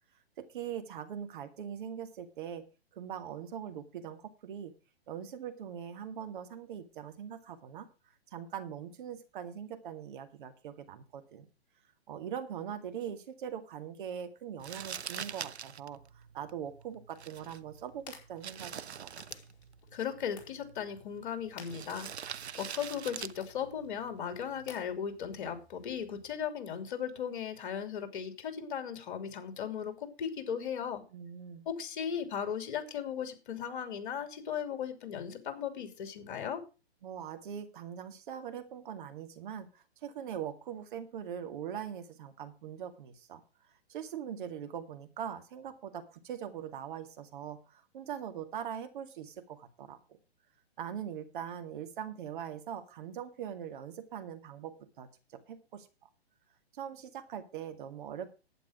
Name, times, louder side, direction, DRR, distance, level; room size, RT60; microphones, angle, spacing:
voice 1, 0.4-2.7 2.9-4.7 5.1-7.9 8.3-11.5 12.1-19.1 31.1-31.7 37.0-43.4 43.9-50.2 50.8-56.1 56.7-58.4, right 9 dB, 50° right, 9 dB, 2.1 m, -42 dB
Crumpling crinkling, 14.6-24.8, right 7 dB, 85° right, 0.8 m, -45 dB
sound 1, 17.3-26.3, left 6 dB, 35° left, 5.0 m, -57 dB
voice 2, 19.9-22.1 22.6-31.0 31.6-36.6, left 8 dB, 50° left, 9 dB, 2.9 m, -37 dB
11.5 x 9.2 x 4.9 m, 0.32 s
hypercardioid pair, 140°, 32 cm